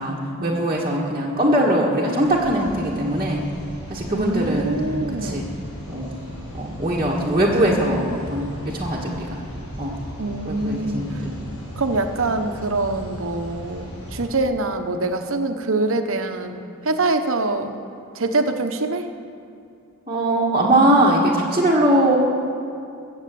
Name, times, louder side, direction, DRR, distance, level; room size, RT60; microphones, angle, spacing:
voice 1, 0.0-3.4 3.9-4.8 5.2-5.4 5.9-6.1 6.5-9.4 9.8-10.0 10.4-11.3 20.1-22.2, right 1 dB, 20° right, -7 dB, 1.7 m, -21 dB
sound 1, 2.2-14.3, equal, 80° left, 4.7 m, -36 dB
voice 2, 4.1-5.5 10.2-11.1 11.8-17.7 18.2-19.1, right 2 dB, 65° right, 6 dB, 1.1 m, -24 dB
23.0 x 8.1 x 7.7 m, 2.5 s
head